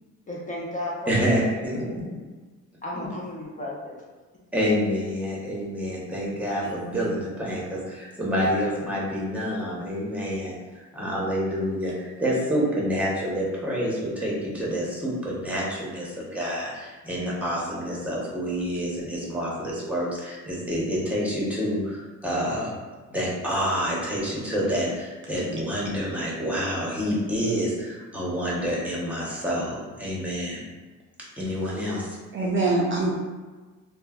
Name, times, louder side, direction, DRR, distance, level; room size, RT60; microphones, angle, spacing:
voice 1, 0.3-1.2 1.5-1.7 2.0-2.1 2.8-4.0, left 1 dB, 25° left, -4 dB, 0.5 m, -34 dB
voice 2, 1.1-2.1 4.5-10.6 10.9-22.7 23.1-30.6 31.4-32.2 32.6-32.7, equal, 5° right, -5 dB, 0.8 m, -28 dB
voice 3, 6.6-7.1 32.3-33.1, right 3 dB, 40° right, -2 dB, 0.4 m, -25 dB
3.0 x 2.1 x 2.3 m, 1.3 s
cardioid pair, 90°, 30 cm